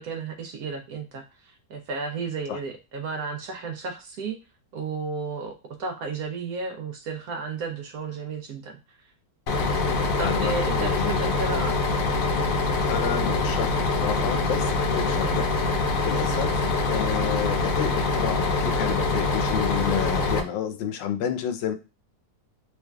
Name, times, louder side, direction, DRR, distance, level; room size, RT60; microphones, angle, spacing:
voice 1, 0.0-4.4 4.7-8.8 10.2-11.8 15.2-15.4 16.3-16.5, right 4 dB, 65° right, 4 dB, 1.0 m, -33 dB
Bus, 9.5-20.4, left 3 dB, 65° left, 0.9 m, -24 dB
voice 2, 10.2-11.2 12.8-21.7, left 9 dB, 85° left, 8 dB, 1.2 m, -31 dB
3.4 x 3.2 x 2.3 m, 0.30 s
omnidirectional pair, 1.9 m